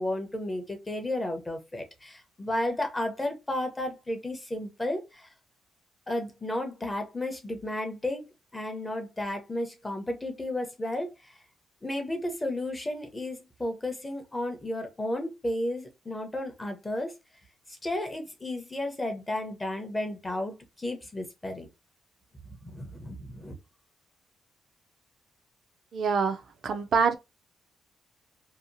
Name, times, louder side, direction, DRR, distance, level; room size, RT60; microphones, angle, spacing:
voice 1, 0.0-5.3 6.1-8.2 8.5-11.4 11.8-17.1 17.7-21.7 22.4-23.6, left 1 dB, 15° left, 0.6 m, -33 dB
voice 2, 25.9-27.1, right 5 dB, 50° right, 0.3 m, -26 dB
2.7 x 2.2 x 2.5 m
cardioid pair, 160°, 0 cm